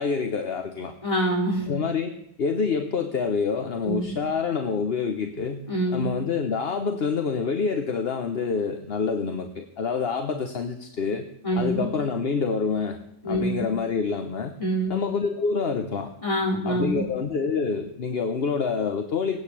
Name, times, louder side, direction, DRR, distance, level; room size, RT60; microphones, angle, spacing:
voice 1, 0.0-0.9 1.7-5.6 5.9-11.3 11.6-13.0 13.3-14.5 14.9-16.1 16.6-19.4, left 5 dB, 40° left, 6 dB, 1.1 m, -27 dB
voice 2, 1.0-1.7 3.8-4.2 5.7-6.0 11.4-11.9 13.2-13.7 14.6-14.9 16.2-17.1, right 1 dB, 20° left, -2 dB, 4.6 m, -25 dB
19.0 x 8.8 x 8.4 m, 0.82 s
omnidirectional pair, 1.8 m